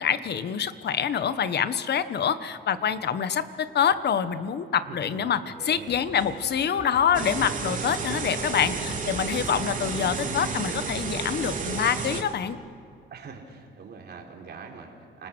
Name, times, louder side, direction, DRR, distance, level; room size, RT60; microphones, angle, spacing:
voice 1, 0.0-5.4 5.6-12.6, left 8 dB, 55° left, 13 dB, 1.2 m, -26 dB
voice 2, 4.9-6.1 13.1-15.3, right 5 dB, 55° right, 1 dB, 3.9 m, -43 dB
sound 1, 5.7-11.1, left 2 dB, 80° left, 5.1 m, -47 dB
Bowed string instrument, 6.2-12.3, right 3 dB, 25° right, 3.7 m, -45 dB
sound 2, 7.1-12.2, right 4 dB, 40° right, 3.2 m, -31 dB
29.5 x 19.5 x 6.3 m, 2.4 s
cardioid pair, 90°, 20 cm